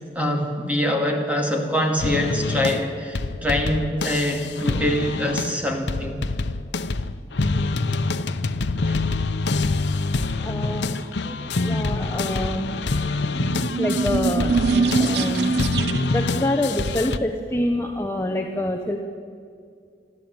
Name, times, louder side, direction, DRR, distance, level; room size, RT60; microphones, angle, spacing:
voice 1, 0.1-6.2 8.9-9.0 11.2-11.8, left 1 dB, 10° right, 2 dB, 2.4 m, -24 dB
sound 1, 2.0-5.6 5.9-17.2, left 3 dB, 85° left, 0.8 m, -26 dB
voice 2, 10.4-11.1 11.6-12.8 13.8-15.6 16.1-19.0, left 1 dB, 15° left, 2 dB, 1.0 m, -26 dB
sound 2, 13.2-16.3, right 4 dB, 75° right, 0.5 m, -23 dB
27.5 x 12.0 x 8.9 m, 2.3 s
head